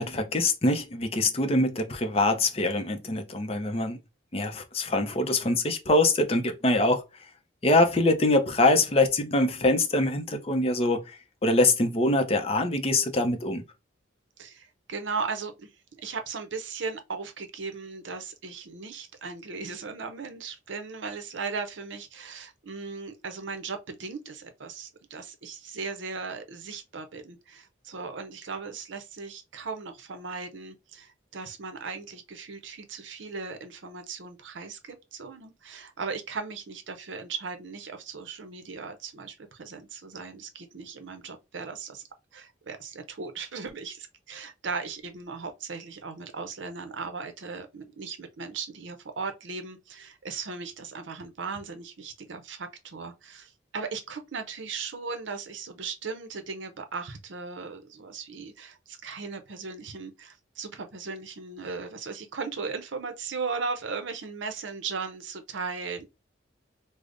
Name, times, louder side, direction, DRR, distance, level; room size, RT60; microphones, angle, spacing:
voice 1, 0.0-4.0 4.3-7.0 7.6-13.6, left 2 dB, 30° left, 0.5 m, -24 dB
voice 2, 14.4-15.7 16.0-42.0 42.3-66.1, right 4 dB, 75° right, 0.6 m, -37 dB
4.9 x 2.0 x 2.5 m
head